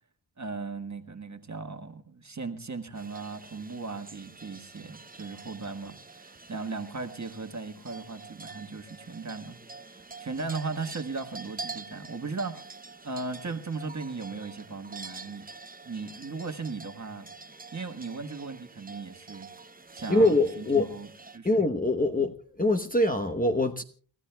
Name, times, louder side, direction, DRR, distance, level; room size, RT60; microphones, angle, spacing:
voice 1, 0.4-9.6 9.8-12.6 13.0-15.4 15.8-17.3 17.7-19.5 19.9-21.1 21.3-21.5, right 4 dB, 35° right, 1.5 m, -37 dB
sound 1, 2.9-21.4, right 4 dB, 20° right, 0.6 m, -46 dB
voice 2, 20.1-20.9 21.4-23.8, left 2 dB, 20° left, 1.0 m, -24 dB
29.0 x 13.5 x 2.3 m
cardioid pair, 60°, 47 cm